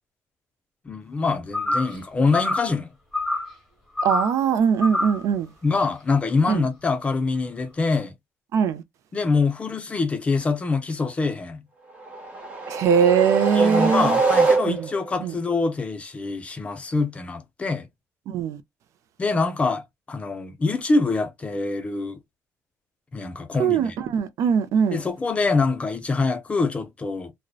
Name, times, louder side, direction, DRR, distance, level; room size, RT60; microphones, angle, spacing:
voice 1, 0.9-2.9 5.6-8.1 9.1-11.6 13.5-17.9 19.2-22.2 23.1-24.0 24.9-27.3, left 3 dB, 20° left, 0.4 m, -25 dB
sound 1, 1.5-2.0 2.3-2.8 3.1-3.5 4.0-4.4 4.8-5.2, left 2 dB, ahead, 1.1 m, -26 dB
voice 2, 4.0-5.5 6.5-6.6 8.5-8.8 12.7-14.2 14.7-14.8 15.2-15.3 18.3-18.6 23.6-25.0, right 7 dB, 60° right, 0.4 m, -21 dB
sound 2, 12.0-15.1, right 3 dB, 20° right, 0.8 m, -23 dB
2.6 x 2.1 x 2.3 m
cardioid pair, 165°, 6 cm